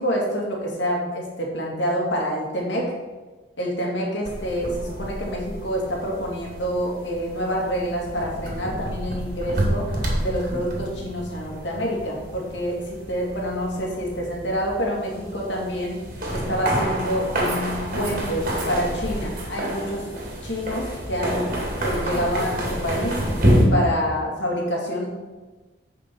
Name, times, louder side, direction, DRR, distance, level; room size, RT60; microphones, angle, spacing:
voice 1, 0.0-2.9 3.6-9.9 10.2-16.0 16.3-20.1 20.4-23.2 23.7-25.1, equal, 75° left, -1 dB, 2.5 m, -27 dB
sound 1, 4.2-23.6, equal, 45° right, 2.4 m, -28 dB
8.7 x 5.3 x 6.2 m, 1.3 s
head